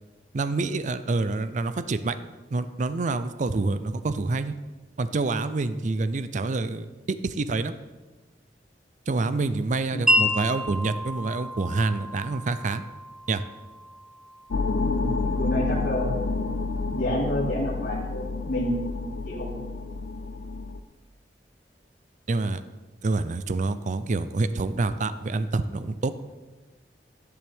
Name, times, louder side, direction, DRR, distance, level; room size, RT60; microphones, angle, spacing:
voice 1, 0.3-2.2 2.5-4.5 5.0-7.7 9.1-12.8 13.3-13.4 22.3-22.6 23.0-26.1, right 3 dB, 45° right, 12 dB, 0.4 m, -27 dB
Wind chime, 10.1-16.1, left 1 dB, ahead, 0.8 m, -30 dB
sound 1, 14.5-20.8, left 3 dB, 90° left, 0.6 m, -29 dB
voice 2, 15.4-16.5 16.9-18.9 19.2-19.5, equal, 60° left, -7 dB, 2.3 m, -29 dB
12.5 x 10.5 x 3.5 m, 1.2 s
head